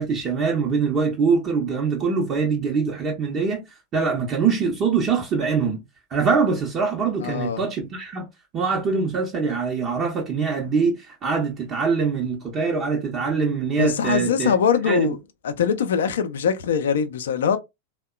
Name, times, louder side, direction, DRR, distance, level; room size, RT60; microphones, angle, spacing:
voice 1, 0.0-5.8 6.1-8.3 8.5-14.5 14.9-15.1, right 5 dB, 30° right, 0.7 m, -23 dB
voice 2, 7.2-7.6 13.8-15.2 15.4-17.6, left 7 dB, 60° left, 0.5 m, -22 dB
3.5 x 2.1 x 2.3 m
figure-of-eight pair, 90°, 0 cm